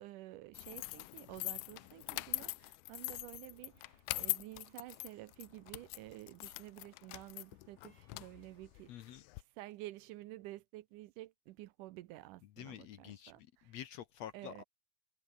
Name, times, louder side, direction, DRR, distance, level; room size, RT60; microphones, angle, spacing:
voice 1, 0.0-13.8 14.3-14.6, right 17 dB, 80° right, 2.2 m, -51 dB
sound 1, 0.5-9.4, left 22 dB, 80° left, 1.8 m, -43 dB
sound 2, 3.4-9.2, right 3 dB, 20° right, 3.3 m, -74 dB
voice 2, 8.9-9.2 12.6-14.6, left 10 dB, 65° left, 1.8 m, -48 dB
omnidirectional pair, 3.8 m